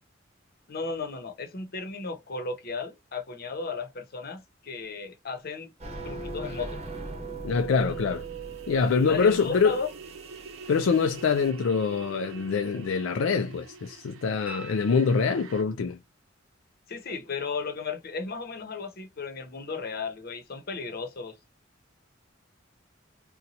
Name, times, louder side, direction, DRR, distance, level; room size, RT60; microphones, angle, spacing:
voice 1, 0.7-5.7 6.0-6.8 9.1-9.9 16.9-21.4, left 4 dB, 50° left, 0.8 m, -35 dB
sound 1, 5.8-11.5, right 3 dB, 35° right, 1.0 m, -40 dB
voice 2, 7.4-8.3 8.7-9.8 10.7-16.0, left 5 dB, 75° left, 0.4 m, -25 dB
sound 2, 7.8-15.6, right 4 dB, 90° right, 0.6 m, -46 dB
sound 3, 14.5-15.8 18.6-18.7, right 3 dB, 10° right, 0.6 m, -46 dB
2.8 x 2.2 x 4.0 m
head